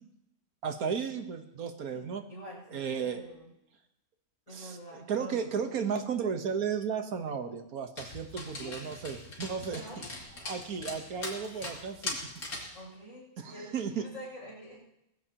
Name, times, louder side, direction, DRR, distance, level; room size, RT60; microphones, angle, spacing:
voice 1, 0.6-2.2 2.7-3.2 4.5-9.8 10.4-12.2 12.5-12.7 13.4-14.0, right 6 dB, 80° right, 7 dB, 1.7 m, -34 dB
voice 2, 1.9-3.5 4.5-5.5 8.5-8.8 9.7-10.1 12.7-14.8, equal, 60° left, -4 dB, 7.5 m, -47 dB
Dog, 8.0-12.8, left 2 dB, 90° left, 3.2 m, -41 dB
19.5 x 15.5 x 2.9 m, 0.85 s
omnidirectional pair, 1.5 m